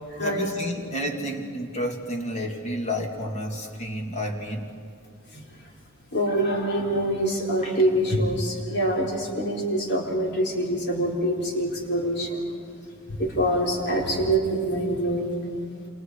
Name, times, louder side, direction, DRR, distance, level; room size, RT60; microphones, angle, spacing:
voice 1, 0.2-4.7 7.6-7.8, equal, 35° left, 2 dB, 2.7 m, -30 dB
voice 2, 6.1-12.4 13.2-15.4, right 1 dB, 55° left, -1 dB, 4.4 m, -25 dB
28.5 x 28.0 x 4.9 m, 2.5 s
head